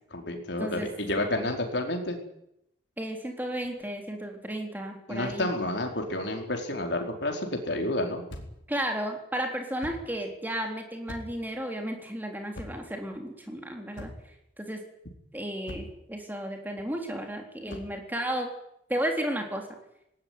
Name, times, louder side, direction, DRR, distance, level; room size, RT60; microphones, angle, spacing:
voice 1, 0.1-2.2 5.1-8.2, left 1 dB, 65° left, 3 dB, 4.7 m, -30 dB
voice 2, 3.0-5.5 8.7-14.1 14.6-14.8 15.3-18.5 18.9-19.6, right 1 dB, 10° right, 3 dB, 3.7 m, -33 dB
sound 1, 8.3-8.7 9.8-10.1 11.1-11.5 12.5-13.0 13.9-14.4 15.7-16.0 17.7-18.0, left 1 dB, 85° left, 4.2 m, -42 dB
19.0 x 18.5 x 9.6 m, 0.80 s
head